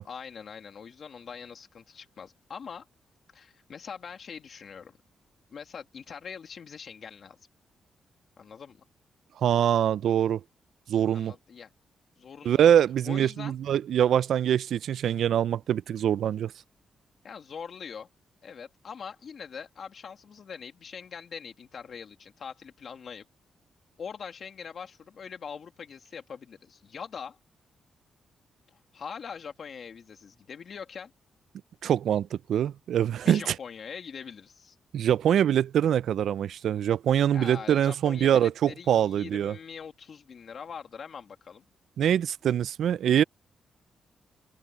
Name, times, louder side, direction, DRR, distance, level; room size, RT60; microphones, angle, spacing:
voice 1, 0.0-2.8 3.3-4.9 5.5-7.4 8.4-8.8 11.1-11.7 12.2-12.7 13.0-13.6 17.2-18.1 18.4-23.3 24.0-27.4 28.9-31.1 33.2-34.8 37.3-41.6, left 6 dB, 60° left, 2.0 m, -42 dB
voice 2, 9.4-10.4 10.9-11.3 12.4-16.5 31.8-33.5 34.9-39.6 42.0-43.2, right 10 dB, 80° right, 0.3 m, -24 dB
open air
cardioid pair, 100°, 0 cm